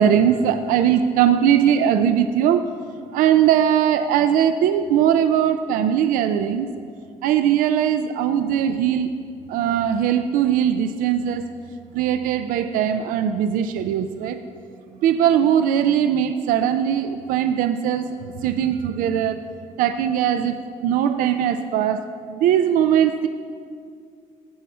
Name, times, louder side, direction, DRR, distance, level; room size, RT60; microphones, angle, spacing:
voice 1, 0.0-2.6 3.1-6.7 7.2-9.1 9.5-11.5 11.9-14.4 15.0-18.1 18.4-19.4 19.8-20.5 20.8-22.0 22.3-23.3, right 9 dB, 85° right, 9 dB, 0.4 m, -20 dB
10.0 x 4.2 x 7.5 m, 2.3 s
cardioid pair, 80°, 14 cm